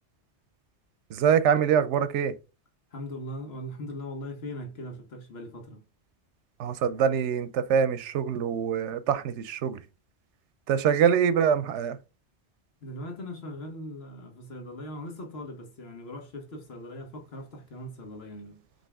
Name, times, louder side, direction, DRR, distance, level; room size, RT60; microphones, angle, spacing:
voice 1, 1.1-2.3 6.6-9.8 10.7-12.0, right 8 dB, 85° right, 0.9 m, -24 dB
voice 2, 2.9-5.8 12.8-18.6, left 1 dB, 65° left, 1.4 m, -40 dB
5.3 x 2.8 x 3.4 m
omnidirectional pair, 1.2 m